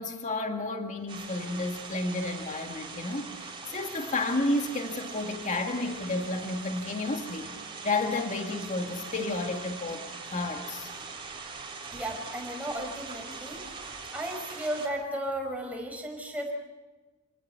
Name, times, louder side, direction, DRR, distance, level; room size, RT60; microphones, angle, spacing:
voice 1, 0.0-7.5 7.8-10.9, left 2 dB, 35° left, 4 dB, 1.9 m, -31 dB
sound 1, 1.1-14.9, right 4 dB, 25° right, 3.9 m, -42 dB
voice 2, 11.9-13.6 14.1-16.5, right 1 dB, 5° right, 1 dB, 5.2 m, -34 dB
29.0 x 19.5 x 5.6 m, 1.2 s
head